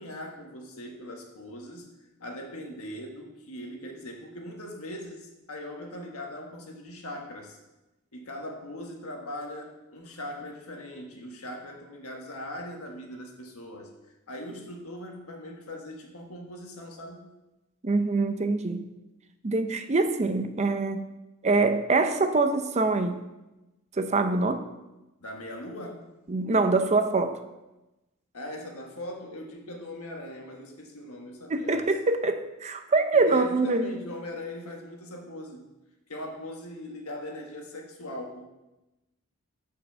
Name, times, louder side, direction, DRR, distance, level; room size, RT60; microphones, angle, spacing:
voice 1, 0.0-1.9 2.2-7.6 8.1-13.9 14.3-17.3 25.2-26.0 28.3-31.9 33.1-35.7 36.1-38.4, left 1 dB, 80° left, 1.5 m, -40 dB
voice 2, 17.8-18.9 19.4-21.1 21.4-23.2 24.0-24.6 26.3-27.4 31.5-33.9, right 3 dB, 30° right, 0.5 m, -24 dB
6.9 x 5.4 x 6.9 m
head